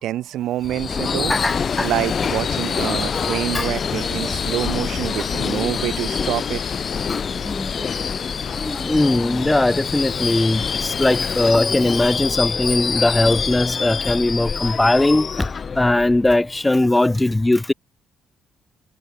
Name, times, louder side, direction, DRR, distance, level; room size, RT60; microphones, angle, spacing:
voice 1, 0.0-1.4 1.8-6.6, right 13 dB, 80° right, 1.0 m, -26 dB
Subway metro underground / Screech, 0.6-16.6, left 5 dB, 40° left, 2.6 m, -26 dB
sound 1, 1.3-11.5, left 9 dB, 60° left, 6.5 m, -32 dB
voice 2, 1.3-1.9 3.5-3.7 4.2-4.3 5.2-5.3 7.1-7.9 8.5-17.7, left 2 dB, 15° left, 0.8 m, -20 dB
cardioid pair, 90°, 0 cm